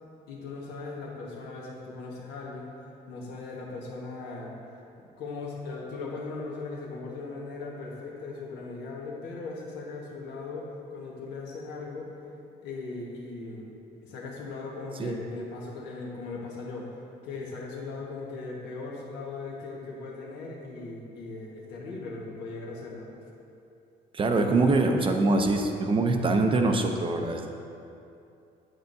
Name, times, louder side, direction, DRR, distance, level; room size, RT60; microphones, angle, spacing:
voice 1, 0.3-2.7 3.1-12.1 12.6-13.7 14.0-16.9 17.2-23.1, left 3 dB, 85° left, -2 dB, 1.4 m, -38 dB
voice 2, 24.1-27.5, right 3 dB, 30° right, 4 dB, 0.6 m, -24 dB
7.9 x 7.9 x 2.7 m, 2.6 s
cardioid pair, 110°, 17 cm